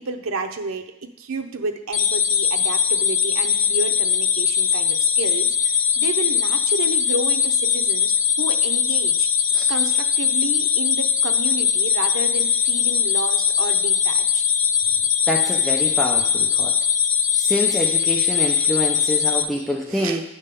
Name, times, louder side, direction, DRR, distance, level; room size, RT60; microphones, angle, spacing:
voice 1, 0.0-9.3 9.7-14.4 19.9-20.2, right 3 dB, 85° right, 5 dB, 0.7 m, -31 dB
sound 1, 1.9-19.4, left 7 dB, 85° left, 0.7 m, -20 dB
voice 2, 15.3-16.7 17.3-20.2, equal, ahead, -2 dB, 0.5 m, -26 dB
9.6 x 3.6 x 6.7 m, 0.85 s
head